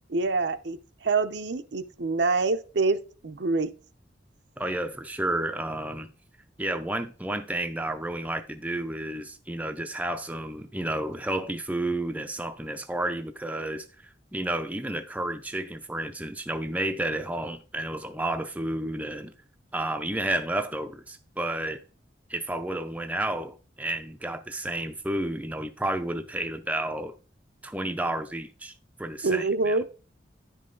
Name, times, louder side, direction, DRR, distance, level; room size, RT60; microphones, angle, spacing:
voice 1, 0.1-0.8 1.0-3.0 3.2-3.7 29.2-29.8, right 3 dB, 65° right, 0.7 m, -25 dB
voice 2, 4.6-6.1 6.6-13.9 14.3-19.3 19.7-21.8 22.3-27.2 27.6-28.7 29.0-29.8, right 1 dB, 10° right, 0.5 m, -31 dB
10.5 x 5.4 x 3.8 m
head